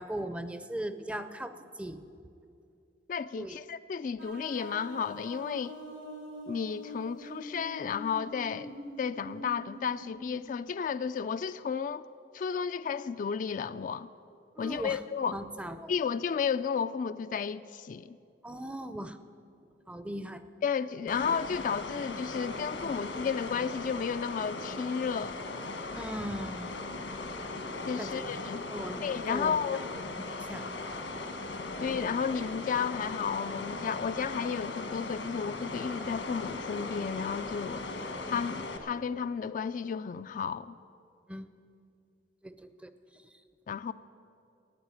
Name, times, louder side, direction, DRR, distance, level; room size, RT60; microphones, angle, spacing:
voice 1, 0.0-2.0 3.4-3.6 14.6-15.0 15.3-15.9 18.4-19.2 19.9-20.4 25.9-26.8 28.0-28.2 28.7-29.0 29.3-29.6 30.4-30.8 41.3-41.5 42.4-42.9, right 1 dB, 5° right, 11 dB, 0.5 m, -38 dB
voice 2, 3.1-5.8 6.5-12.1 12.3-14.1 14.6-15.4 15.9-18.2 20.6-25.4 27.9-28.6 29.0-29.8 31.8-37.9 38.3-40.8 43.7-43.9, left 6 dB, 45° left, 11 dB, 0.3 m, -33 dB
sound 1, 4.2-10.9, equal, 80° right, 3.5 m, -45 dB
sound 2, 21.1-38.8, left 3 dB, 85° left, 1.5 m, -38 dB
14.5 x 9.3 x 9.6 m, 2.5 s
head